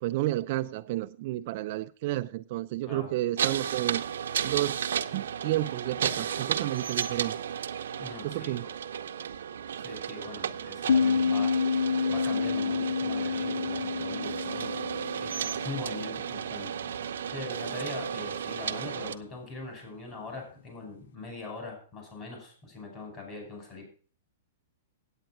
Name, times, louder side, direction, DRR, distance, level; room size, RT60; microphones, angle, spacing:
voice 1, 0.0-4.0 4.4-4.8 5.1-7.4 8.2-8.7, right 16 dB, 45° right, 0.4 m, -31 dB
sound 1, 3.4-19.2, right 8 dB, 85° right, 0.8 m, -34 dB
voice 2, 8.0-8.7 9.8-23.9, left 3 dB, 25° left, 5.4 m, -42 dB
sound 2, 10.9-16.2, left 5 dB, 70° left, 0.5 m, -28 dB
9.1 x 8.8 x 5.8 m
hypercardioid pair, 160°, 0 cm